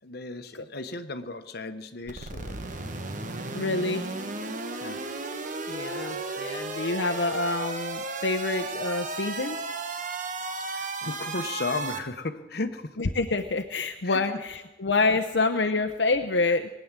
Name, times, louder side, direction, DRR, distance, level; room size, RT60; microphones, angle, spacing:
voice 1, 0.0-2.8 4.8-5.0 10.7-12.9 14.0-14.2 16.4-16.5, left 3 dB, 60° left, 8 dB, 1.1 m, -35 dB
sound 1, 2.1-12.0, right 3 dB, 45° right, 1.3 m, -34 dB
voice 2, 3.5-4.0 5.7-9.6 13.0-16.7, left 3 dB, 80° left, 5 dB, 0.8 m, -27 dB
20.5 x 9.4 x 7.5 m, 1.1 s
head